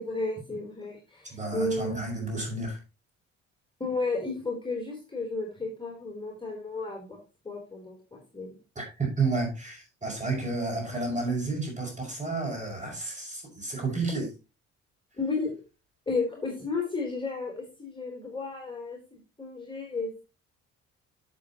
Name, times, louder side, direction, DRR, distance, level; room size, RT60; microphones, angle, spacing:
voice 1, 0.0-2.0 3.8-7.2 7.4-8.6 15.2-15.5 16.1-20.2, left 3 dB, 15° left, 3.8 m, -33 dB
voice 2, 1.2-2.8 8.8-14.3, right 3 dB, 20° right, 6.1 m, -31 dB
11.5 x 7.8 x 3.0 m
figure-of-eight pair, 50°, 38 cm